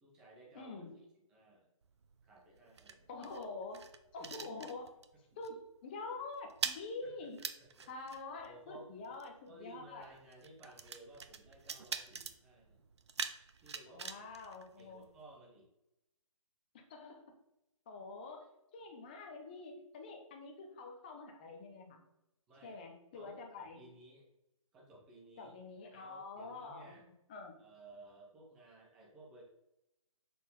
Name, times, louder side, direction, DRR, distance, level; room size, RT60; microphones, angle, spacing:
voice 1, 0.0-0.8 1.3-1.7 2.2-3.1 4.2-4.5 7.0-7.3 7.8-7.9 8.4-8.9 9.5-12.8 13.6-14.1 14.4-14.5 14.8-15.7 22.5-22.8 23.1-24.2 24.7-25.5 25.9-27.0 27.6-29.4, right 2 dB, 5° right, -4 dB, 0.4 m, -57 dB
voice 2, 0.5-0.9 3.1-5.0 5.4-7.4 7.9-10.1 13.9-15.1 16.7-17.3 17.9-22.0 22.6-23.8 25.4-27.6, left 3 dB, 15° left, 3 dB, 0.8 m, -47 dB
sound 1, 1.8-5.2 5.4-5.7 6.0-15.4, right 5 dB, 50° right, 0.6 m, -45 dB
6.5 x 4.3 x 5.3 m, 0.88 s
hypercardioid pair, 170°, 18 cm